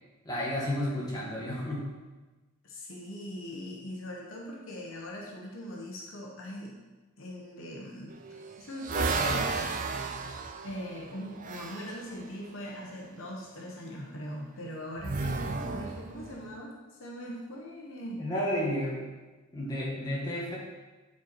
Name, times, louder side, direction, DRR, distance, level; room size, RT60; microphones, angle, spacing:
voice 1, 0.3-1.9 18.2-19.0 19.5-20.6, left 1 dB, 15° left, -5 dB, 1.7 m, -31 dB
voice 2, 2.6-6.8 7.2-8.1 8.6-9.6 10.6-18.3, equal, 65° left, -2 dB, 1.3 m, -40 dB
sound 1, 8.1-12.0 15.0-16.4, right 4 dB, 35° right, 0.5 m, -33 dB
9.3 x 4.6 x 4.5 m, 1.2 s
head